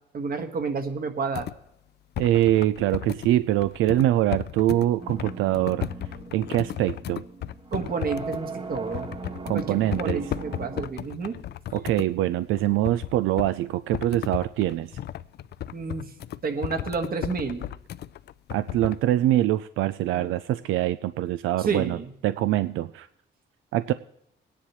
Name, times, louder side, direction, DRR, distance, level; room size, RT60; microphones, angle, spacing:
voice 1, 0.1-1.5 7.7-9.1 9.5-11.4 15.7-16.1 16.4-17.7 20.1-20.3 21.6-22.1, right 4 dB, 50° right, 6 dB, 1.6 m, -30 dB
sound 1, 1.4-1.6 2.2-3.3 3.6-8.4 8.7-9.7 9.9-12.1 12.5-13.5 13.9-19.0, left 11 dB, 55° left, 0.4 m, -35 dB
voice 2, 2.2-5.9 6.3-7.2 9.4-10.2 11.7-15.0 18.5-23.1 23.7-23.9, right 14 dB, 85° right, 13 dB, 0.4 m, -24 dB
sound 2, 5.0-10.9, right 4 dB, 25° right, 1.0 m, -39 dB
19.5 x 10.0 x 3.1 m, 0.76 s
cardioid pair, 90°, 20 cm